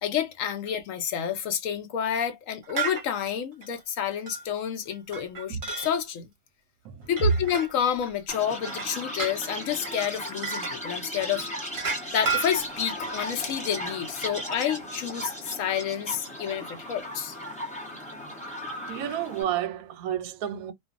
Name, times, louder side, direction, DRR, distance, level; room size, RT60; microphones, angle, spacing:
voice 1, 0.0-6.3 7.1-11.5 12.1-17.4, left 9 dB, 70° left, 0.8 m, -29 dB
sound 1, 2.6-3.0 3.6-3.8 4.3-4.4 4.9-5.9 7.0-8.1 8.5-10.0 10.4-10.8 11.7-13.4 14.2-14.6, right 5 dB, 40° right, 0.7 m, -33 dB
Chirp tweet, 8.3-19.4, equal, 10° left, 0.3 m, -36 dB
voice 2, 18.9-20.7, right 10 dB, 70° right, 1.0 m, -31 dB
2.5 x 2.3 x 2.4 m
omnidirectional pair, 1.8 m